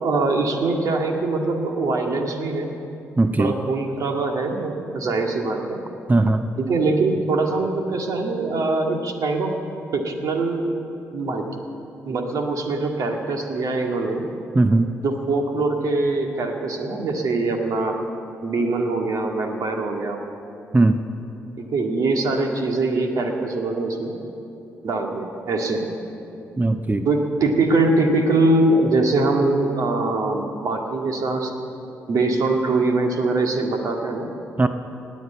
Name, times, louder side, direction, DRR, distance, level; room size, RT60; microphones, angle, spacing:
voice 1, 0.0-2.7 3.4-5.8 6.6-9.5 9.9-10.7 11.1-11.4 12.1-14.2 15.0-18.0 18.4-20.2 21.6-24.2 24.8-25.9 27.1-31.5 32.1-34.3, right 2 dB, 65° right, 3 dB, 1.9 m, -22 dB
voice 2, 3.2-3.5 6.1-6.5 14.5-15.0 20.7-21.0 26.6-27.1 34.6-34.7, right 2 dB, 25° right, 9 dB, 0.7 m, -18 dB
19.0 x 8.4 x 8.1 m, 2.8 s
supercardioid pair, 50°, 6 cm